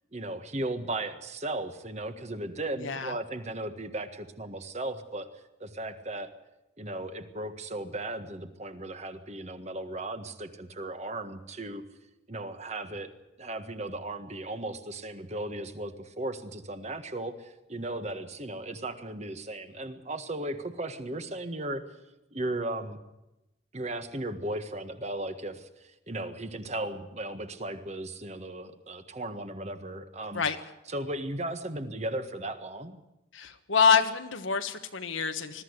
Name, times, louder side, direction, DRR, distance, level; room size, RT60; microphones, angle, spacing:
voice 1, 0.1-5.3 5.6-6.3 6.8-11.8 12.3-13.1 13.4-21.8 22.3-23.0 23.7-30.4 30.8-33.0, right 1 dB, 35° right, 9 dB, 1.6 m, -36 dB
voice 2, 33.3-35.6, left 6 dB, 90° left, 6 dB, 1.4 m, -26 dB
21.5 x 14.0 x 9.7 m, 0.96 s
head